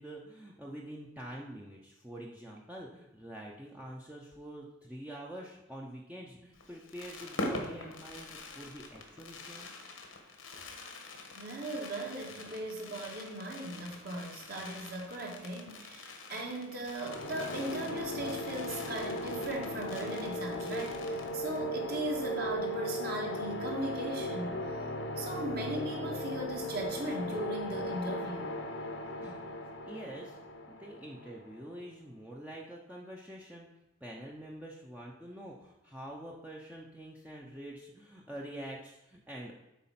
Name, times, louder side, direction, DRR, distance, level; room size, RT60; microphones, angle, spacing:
voice 1, 0.0-9.7 29.0-29.4 29.8-30.4 30.7-33.7 34.0-39.5, right 1 dB, 5° right, -2 dB, 0.6 m, -46 dB
Fireworks, 6.5-21.7 22.0-22.1 22.3-22.6, left 2 dB, 85° left, 1.3 m, -45 dB
voice 2, 11.4-24.5 25.2-28.5, right 1 dB, 50° right, 0 dB, 1.6 m, -38 dB
sound 1, 17.0-31.7, left 1 dB, 65° left, 0.9 m, -37 dB
8.2 x 4.3 x 5.8 m, 0.94 s
head